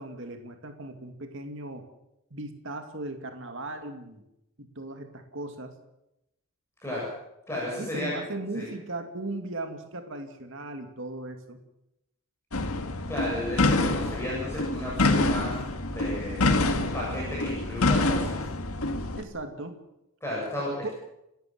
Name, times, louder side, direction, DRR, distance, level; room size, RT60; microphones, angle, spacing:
voice 1, 0.0-1.8 2.3-4.2 4.6-5.7 7.8-11.6 19.2-19.8 20.8-20.9, right 2 dB, 60° right, 6 dB, 2.4 m, -37 dB
voice 2, 7.5-8.1 8.5-8.7 13.1-15.5 15.9-18.4 20.2-20.9, left 1 dB, 10° left, -6 dB, 8.0 m, -33 dB
sound 1, 12.5-19.2, left 2 dB, 80° left, 1.9 m, -26 dB
29.5 x 13.0 x 7.7 m, 0.88 s
head